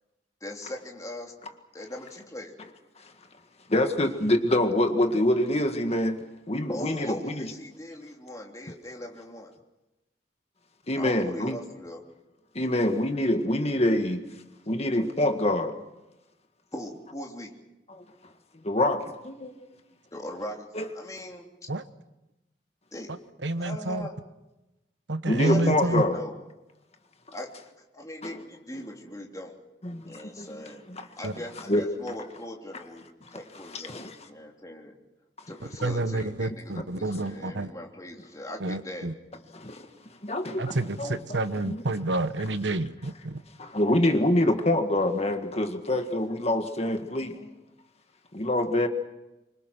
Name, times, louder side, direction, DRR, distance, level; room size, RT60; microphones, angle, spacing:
voice 1, 0.4-1.3 1.7-2.6 6.7-9.5 10.9-12.0 16.7-17.6 20.1-20.7 20.9-21.7 22.9-23.1 23.6-24.1 25.3-26.4 27.3-29.6 30.0-30.8 31.2-35.0 35.5-39.1, left 1 dB, 20° left, 0 dB, 3.3 m, -40 dB
voice 2, 3.7-7.5 10.9-11.6 12.6-14.2 14.7-15.7 17.9-18.0 18.5-19.5 20.8-20.9 25.3-26.2 29.8-30.5 30.9-31.0 31.7-31.8 33.7-34.1 36.8-36.9 39.5-39.9 40.2-41.2 41.7-41.8 43.6-47.5 48.3-48.9, left 1 dB, 35° left, 6 dB, 1.8 m, -26 dB
voice 3, 23.4-24.1 25.1-26.0 31.2-31.3 35.8-37.7 38.6-39.1 40.6-43.4, right 2 dB, 90° right, 12 dB, 1.2 m, -29 dB
26.0 x 24.5 x 6.1 m, 0.98 s
head